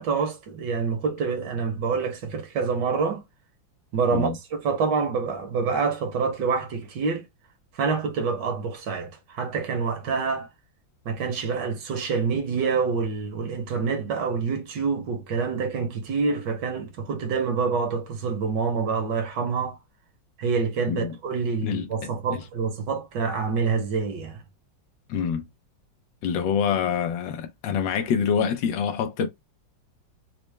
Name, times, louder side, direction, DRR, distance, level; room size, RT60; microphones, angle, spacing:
voice 1, 0.0-3.2 3.9-7.2 7.7-10.5 11.0-19.8 20.4-24.4, right 5 dB, 70° right, 1.4 m, -27 dB
voice 2, 21.6-22.4 25.1-25.5 26.2-29.3, left 7 dB, 80° left, 1.4 m, -26 dB
4.3 x 2.1 x 3.1 m
omnidirectional pair, 2.1 m